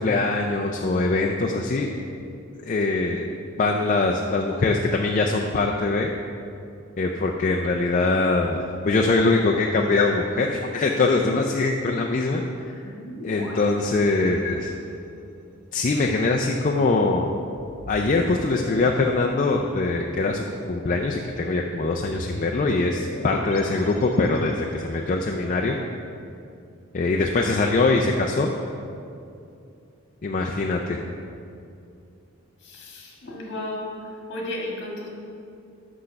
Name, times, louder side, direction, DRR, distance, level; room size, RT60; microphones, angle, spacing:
voice 1, 0.0-1.9 2.6-3.3 3.6-6.1 7.0-12.8 13.2-14.7 15.7-17.3 17.9-25.8 26.9-28.5 30.2-31.0, left 3 dB, 35° left, 1 dB, 0.4 m, -23 dB
sound 1, 9.1-10.6 12.8-14.9 17.6-20.1 21.9-24.9, left 1 dB, 70° left, 1.0 m, -39 dB
voice 2, 32.6-33.9 34.3-35.1, left 1 dB, 55° left, -2 dB, 1.6 m, -33 dB
6.1 x 5.8 x 6.5 m, 2.5 s
head